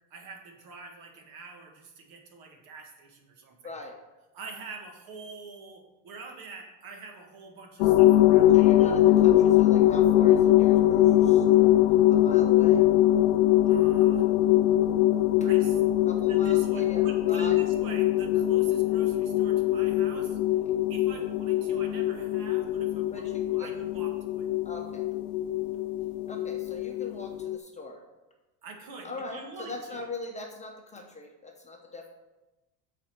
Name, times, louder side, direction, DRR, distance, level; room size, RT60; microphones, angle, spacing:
voice 1, 0.1-3.6 4.3-8.7 13.6-14.3 15.4-15.8 16.2-20.4 20.9-24.5 28.6-30.0, right 4 dB, 60° right, 2 dB, 1.6 m, -45 dB
voice 2, 3.6-3.9 8.5-11.8 12.1-12.9 16.0-17.6 23.1-23.7 24.6-25.1 26.3-28.0 29.0-32.1, left 2 dB, 15° left, 1 dB, 0.8 m, -41 dB
sound 1, 7.8-27.6, left 13 dB, 85° left, 0.5 m, -22 dB
7.2 x 4.2 x 6.6 m, 1.1 s
cardioid pair, 130°, 41 cm